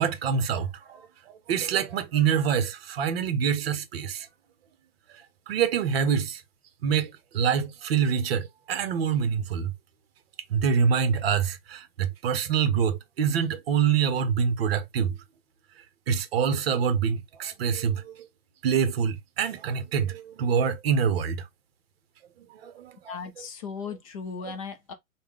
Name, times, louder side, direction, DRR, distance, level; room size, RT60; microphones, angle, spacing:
voice 1, 0.0-4.3 5.1-6.4 6.8-9.7 10.5-15.2 16.1-18.3 18.6-21.5 22.4-23.2, right 7 dB, 45° right, 0.7 m, -26 dB
voice 2, 23.1-24.9, left 5 dB, 25° left, 0.4 m, -37 dB
3.4 x 2.2 x 3.5 m
hypercardioid pair, 125°, 42 cm